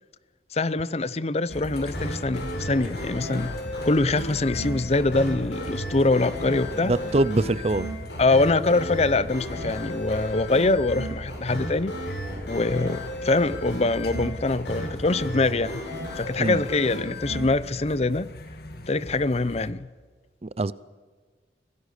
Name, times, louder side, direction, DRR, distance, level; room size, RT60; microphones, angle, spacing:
voice 1, 0.5-3.5 3.8-6.9 8.2-11.9 12.5-15.7 16.2-18.3 18.9-19.9, left 2 dB, 35° left, 0.7 m, -24 dB
sound 1, 1.5-17.4, equal, 75° left, 7.9 m, -34 dB
sound 2, 1.5-19.7, left 1 dB, 55° left, 1.9 m, -40 dB
voice 2, 6.9-7.9 16.4-16.6 20.4-20.7, right 2 dB, 35° right, 0.5 m, -23 dB
25.5 x 17.0 x 6.6 m
head